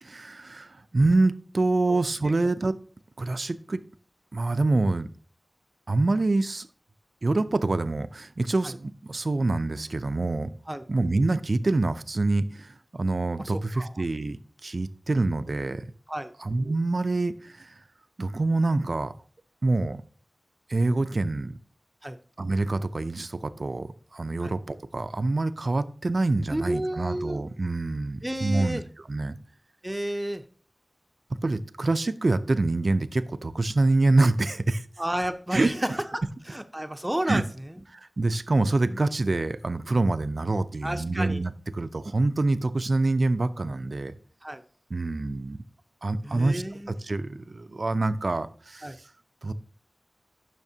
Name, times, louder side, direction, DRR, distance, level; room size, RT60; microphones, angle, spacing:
voice 1, 0.0-2.7 3.2-3.8 4.3-5.1 5.9-6.7 7.2-10.5 10.9-15.9 16.4-17.7 18.2-19.1 19.6-20.0 20.7-21.5 22.4-28.8 29.1-29.4 31.4-34.9 35.5-35.7 37.3-37.4 37.9-44.1 44.9-45.6 46.0-48.9 49.4-49.5, right 2 dB, 65° right, 0.4 m, -26 dB
voice 2, 13.4-13.9 16.1-16.3 22.0-22.2 24.4-24.5 26.5-27.4 28.2-28.8 29.8-30.4 35.0-36.2 36.5-37.4 40.8-41.4 44.4-44.6 46.2-46.9 48.8-49.0, right 1 dB, 20° right, 0.6 m, -31 dB
10.5 x 5.8 x 2.8 m
wide cardioid pair, 40°, 0 cm